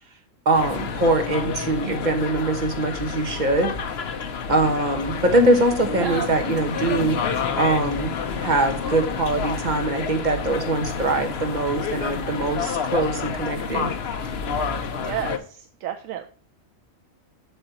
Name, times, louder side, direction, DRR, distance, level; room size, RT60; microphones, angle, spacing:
voice 1, 0.4-3.7 4.5-7.2 7.5-8.1 8.4-13.9, right 2 dB, 35° right, 5 dB, 1.4 m, -22 dB
sound 1, 0.5-15.4, left 5 dB, 55° left, 1.0 m, -29 dB
voice 2, 6.0-6.3 15.0-16.3, right 10 dB, 80° right, 7 dB, 1.1 m, -31 dB
8.0 x 6.5 x 2.9 m, 0.42 s
omnidirectional pair, 1.4 m